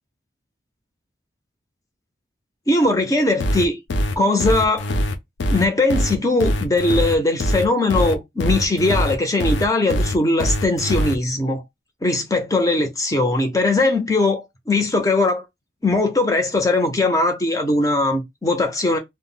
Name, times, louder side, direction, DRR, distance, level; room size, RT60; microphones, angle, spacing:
voice 1, 2.7-3.8 4.2-4.9 5.5-11.6 12.0-15.5 15.8-19.0, left 2 dB, 20° left, 0.5 m, -20 dB
sound 1, 3.4-11.2, equal, 80° left, 0.4 m, -22 dB
2.1 x 2.0 x 3.6 m
head